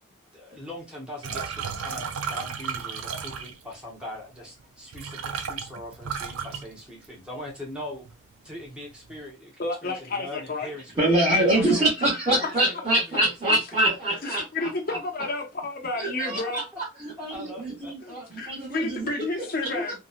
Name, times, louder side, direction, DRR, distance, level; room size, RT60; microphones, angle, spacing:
voice 1, 0.3-8.0 8.4-10.9 11.3-11.9 12.3-13.3 14.3-15.0 16.2-16.5 17.3-17.9 19.6-19.8, left 1 dB, 5° right, 0.9 m, -40 dB
sound 1, 1.2-3.8 4.6-4.7 4.9-7.4 7.7-8.2 8.5-9.2, right 6 dB, 90° right, 0.5 m, -34 dB
voice 2, 9.6-10.7 13.5-13.6 14.2-16.6 17.5-17.6 18.0-19.9, left 2 dB, 45° left, 0.6 m, -31 dB
voice 3, 11.0-14.7 16.0-16.6 17.0-19.1, right 1 dB, 25° right, 1.1 m, -24 dB
2.8 x 2.2 x 2.4 m
head